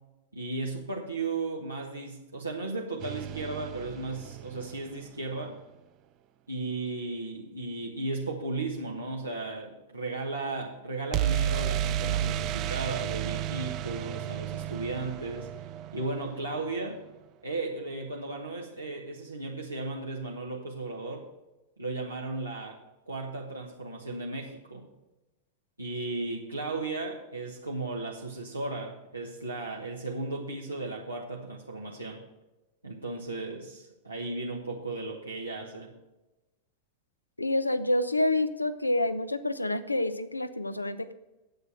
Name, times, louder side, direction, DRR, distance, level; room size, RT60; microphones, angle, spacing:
voice 1, 0.3-5.6 6.5-15.5 15.9-17.0 17.4-21.3 21.8-22.8 23.1-24.9 25.8-32.2 32.8-35.9, right 2 dB, 85° right, -2 dB, 1.3 m, -35 dB
sound 1, 3.0-5.0 11.1-16.9, right 11 dB, 40° right, 0.5 m, -32 dB
voice 2, 37.4-41.1, left 1 dB, 85° left, 12 dB, 0.7 m, -28 dB
9.4 x 8.1 x 6.2 m, 1.0 s
figure-of-eight pair, 90°, 0 cm